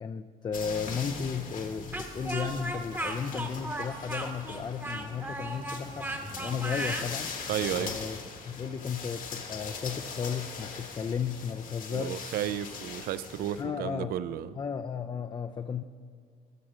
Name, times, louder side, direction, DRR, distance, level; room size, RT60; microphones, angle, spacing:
voice 1, 0.0-6.1 6.4-7.3 7.8-8.2 8.5-12.3 13.6-14.2 14.6-15.8, left 6 dB, 25° left, 7 dB, 0.4 m, -34 dB
sound 1, 0.5-13.6, left 5 dB, 50° left, 1.3 m, -41 dB
Speech, 1.9-7.1, right 1 dB, 10° right, 1.0 m, -35 dB
voice 2, 7.5-7.9 11.9-14.5, right 11 dB, 65° right, 15 dB, 0.4 m, -33 dB
13.5 x 6.2 x 4.9 m, 2.1 s
cardioid pair, 110°, 17 cm